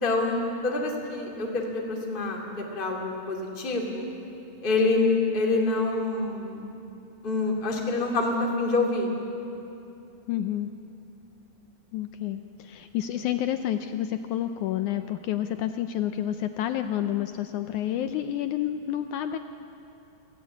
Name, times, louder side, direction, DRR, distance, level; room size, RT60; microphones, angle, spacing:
voice 1, 0.0-2.4 2.7-4.1 4.6-6.7 7.2-9.1, left 3 dB, 15° left, -1 dB, 2.3 m, -26 dB
voice 2, 10.3-10.7 11.9-19.4, left 11 dB, 80° left, 8 dB, 1.8 m, -29 dB
25.5 x 16.5 x 8.4 m, 2.8 s
omnidirectional pair, 4.1 m